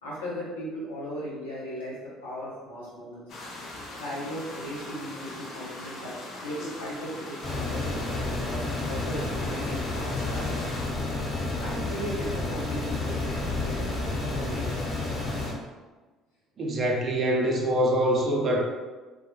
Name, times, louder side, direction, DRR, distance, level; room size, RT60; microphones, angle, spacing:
voice 1, 0.0-3.2 4.0-8.6 8.9-10.7 11.1-14.9, equal, 90° left, -7 dB, 0.8 m, -37 dB
sound 1, 3.3-10.9, left 1 dB, 55° left, 0.5 m, -41 dB
sound 2, 7.4-15.5, left 2 dB, 35° left, 1.0 m, -30 dB
voice 2, 16.6-18.6, right 1 dB, 45° right, -1 dB, 0.6 m, -24 dB
2.2 x 2.1 x 2.9 m, 1.3 s
hypercardioid pair, 60°, 0 cm